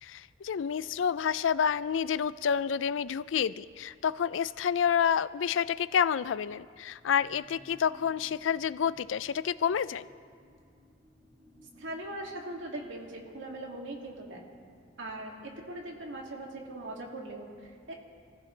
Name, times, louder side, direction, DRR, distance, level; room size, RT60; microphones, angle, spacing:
voice 1, 0.0-10.1, left 7 dB, 80° left, 17 dB, 0.4 m, -29 dB
sound 1, 7.0-16.8 17.2-17.3, left 1 dB, 10° right, 3.2 m, -60 dB
voice 2, 11.8-14.4 15.0-17.9, right 1 dB, 90° right, 0 dB, 2.5 m, -40 dB
27.0 x 15.5 x 3.3 m, 2.2 s
head